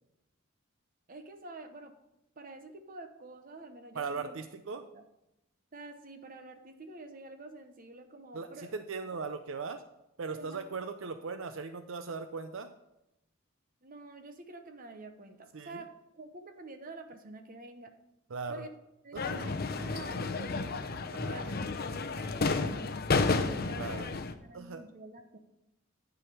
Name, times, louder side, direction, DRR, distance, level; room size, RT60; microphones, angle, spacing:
voice 1, 1.1-1.9 2.4-4.3 4.8-5.0 5.7-8.7 10.3-10.6 13.8-15.9 16.2-17.9 18.5-18.7 19.0-20.8 21.3-23.0 23.4-24.1 24.4-25.4, right 2 dB, 40° right, 7 dB, 0.9 m, -48 dB
voice 2, 3.9-4.9 8.3-9.8 10.2-12.7 15.5-15.8 18.3-18.6 19.1-19.5 21.1-21.5 23.8-24.1 24.5-24.8, right 4 dB, 65° right, 9 dB, 0.6 m, -39 dB
sound 1, 19.2-24.3, left 3 dB, 45° left, 0.6 m, -31 dB
11.0 x 5.0 x 6.6 m, 0.90 s
head